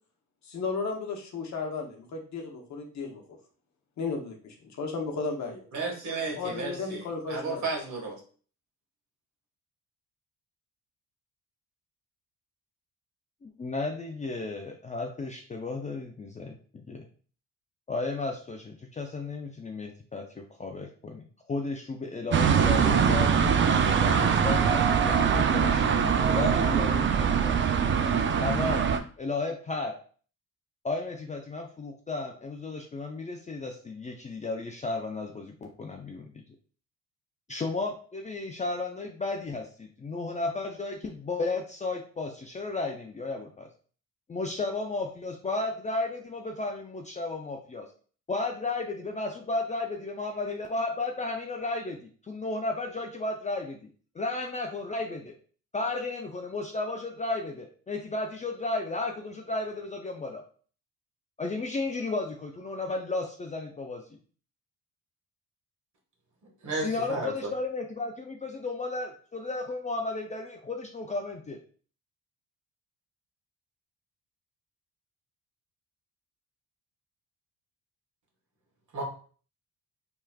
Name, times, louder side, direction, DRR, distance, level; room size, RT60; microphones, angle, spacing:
voice 1, 0.4-3.4 4.0-5.7 6.4-7.7, left 4 dB, 50° left, 2 dB, 1.0 m, -34 dB
voice 2, 5.7-8.2 66.6-67.5 78.9-79.0, right 3 dB, 55° right, -1 dB, 1.7 m, -33 dB
voice 3, 13.4-17.0 17.9-28.0 28.4-28.8 29.2-29.9 30.8-36.4 37.5-43.7 44.3-47.9 48.3-53.9 54.1-55.3 55.7-60.4 61.4-64.0 66.7-71.6, left 3 dB, 20° left, 2 dB, 0.5 m, -34 dB
sound 1, 22.3-29.0, right 7 dB, 35° right, 0.4 m, -23 dB
3.4 x 3.0 x 2.3 m, 0.43 s
supercardioid pair, 65°, 35 cm